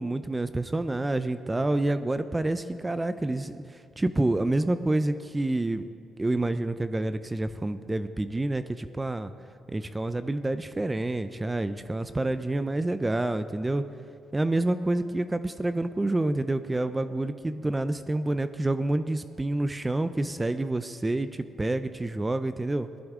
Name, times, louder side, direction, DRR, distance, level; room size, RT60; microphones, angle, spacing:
voice 1, 0.0-5.9 6.2-9.3 9.7-13.8 14.3-22.9, right 2 dB, 15° right, 11 dB, 0.4 m, -28 dB
16.5 x 12.0 x 3.6 m, 2.4 s
cardioid pair, 90°, 0 cm